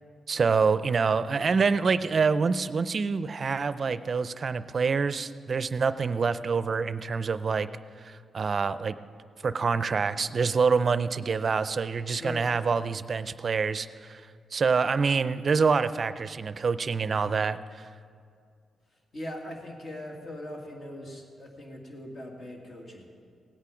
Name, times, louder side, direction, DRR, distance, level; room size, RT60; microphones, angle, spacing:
voice 1, 0.3-7.7 8.0-9.0 9.4-14.2 14.5-17.6, right 5 dB, 45° right, 13 dB, 0.4 m, -26 dB
voice 2, 12.1-12.4 19.1-23.1, left 1 dB, 55° left, 0 dB, 2.3 m, -40 dB
17.5 x 8.4 x 5.0 m, 2.2 s
cardioid pair, 105°, 0 cm